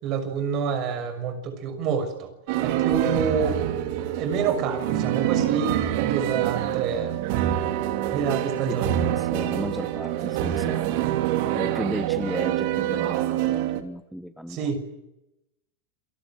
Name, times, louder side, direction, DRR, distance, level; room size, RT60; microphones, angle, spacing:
voice 1, 0.0-2.3 2.6-3.6 4.2-7.2 8.1-8.9 14.5-14.8, right 6 dB, 40° right, 9 dB, 6.3 m, -28 dB
sound 1, 2.5-13.8, right 12 dB, 55° right, 3.0 m, -26 dB
voice 2, 8.7-11.0 11.5-14.6, equal, ahead, 11 dB, 1.0 m, -34 dB
28.0 x 19.0 x 9.2 m, 0.88 s
supercardioid pair, 140°, 0 cm